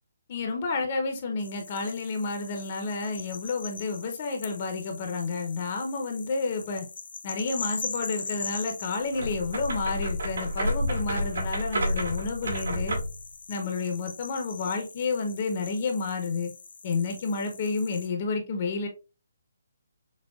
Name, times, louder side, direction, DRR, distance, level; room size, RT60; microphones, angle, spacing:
voice 1, 0.3-6.8 7.2-13.0 13.5-16.5 16.8-18.9, left 4 dB, 30° left, 0.6 m, -30 dB
sound 1, 1.4-18.1, left 5 dB, 65° left, 0.9 m, -42 dB
sound 2, 9.1-13.2, equal, 80° right, 2.0 m, -29 dB
6.0 x 2.2 x 2.3 m
hypercardioid pair, 170°, 0 cm